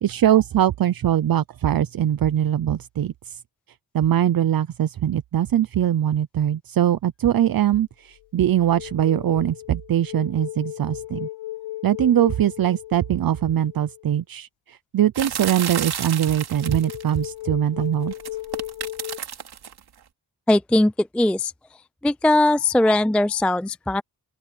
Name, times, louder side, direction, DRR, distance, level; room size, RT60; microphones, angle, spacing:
voice 1, 0.0-3.4 3.9-11.3 11.8-18.1, right 11 dB, 65° right, 0.7 m, -22 dB
sound 1, 7.4-7.7 8.2-14.1 16.6-19.2, left 15 dB, 80° left, 0.6 m, -36 dB
sound 2, 15.1-17.2 18.1-19.8, right 8 dB, 90° right, 2.7 m, -31 dB
voice 2, 20.5-21.5 22.0-24.0, left 1 dB, 5° left, 0.3 m, -20 dB
open air
cardioid pair, 90°, 38 cm